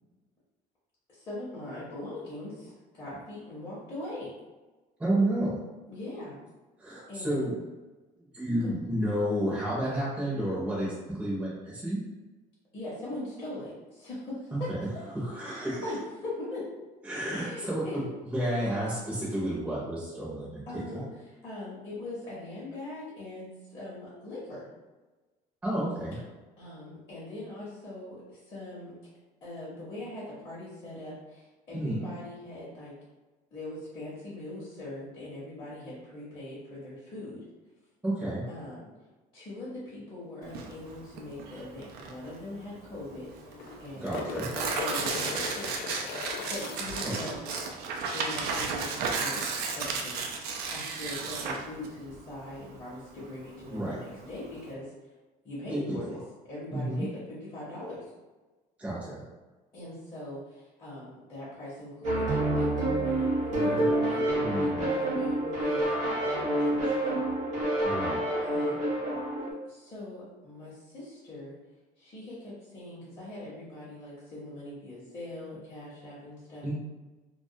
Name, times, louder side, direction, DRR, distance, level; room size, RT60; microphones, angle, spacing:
voice 1, 1.1-4.3 5.9-6.4 7.1-7.5 12.7-14.7 15.3-16.9 17.2-18.0 20.7-24.6 26.6-28.9 29.4-32.9 33.5-37.4 38.5-38.9 39.3-43.3 43.8-44.2 44.6-45.8 46.3-47.6 48.1-54.9 55.4-56.2 56.4-58.0 59.7-67.2 68.4-69.0 69.6-71.6 72.0-76.7, left 2 dB, 30° left, -10 dB, 0.8 m, -41 dB
voice 2, 5.0-5.6 6.8-7.5 8.3-10.9 11.2-12.0 14.5-14.8 15.1-15.8 17.0-18.0 18.3-21.0 25.6-26.2 31.7-32.1 38.0-38.4 44.0-44.5 47.0-47.1 53.7-54.0 55.7-56.0 56.7-57.0 58.8-59.2 64.4-64.9 67.8-68.2 76.6-76.7, right 1 dB, 10° right, -7 dB, 0.6 m, -31 dB
Tearing, 40.5-54.7, right 4 dB, 75° right, 0.4 m, -34 dB
sound 1, 41.9-42.0 42.2-42.3 43.4-47.1 49.7-49.8, left 4 dB, 75° left, 0.4 m, -38 dB
sound 2, 62.0-69.5, right 1 dB, 50° right, 0.8 m, -28 dB
2.2 x 2.1 x 2.7 m, 1.2 s
cardioid pair, 145°, 16 cm